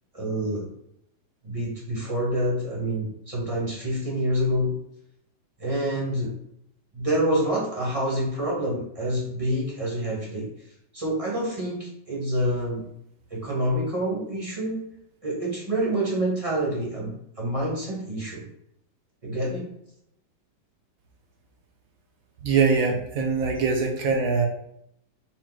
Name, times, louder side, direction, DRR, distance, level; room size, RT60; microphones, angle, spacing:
voice 1, 0.1-0.7 1.4-4.7 5.6-6.3 6.9-10.5 10.9-12.8 13.3-14.8 15.2-18.4 19.2-19.7, right 1 dB, 30° right, -3 dB, 0.7 m, -27 dB
voice 2, 22.4-24.5, right 5 dB, 65° right, 2 dB, 0.9 m, -23 dB
4.4 x 2.1 x 3.9 m, 0.75 s
omnidirectional pair, 1.9 m